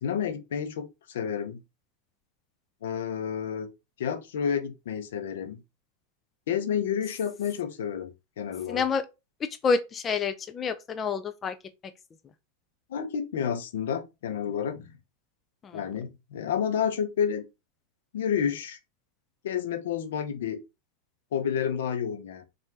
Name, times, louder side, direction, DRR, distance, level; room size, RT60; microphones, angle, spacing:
voice 1, 0.0-1.6 2.8-3.7 4.0-5.6 6.5-8.8 12.9-14.9 15.7-17.4 18.1-18.8 19.4-20.6 21.3-22.5, left 8 dB, 60° left, 0.8 m, -30 dB
voice 2, 8.7-9.0 9.6-11.6 15.6-15.8, left 5 dB, 25° left, 0.5 m, -28 dB
4.2 x 2.6 x 4.8 m
figure-of-eight pair, 90°, 0 cm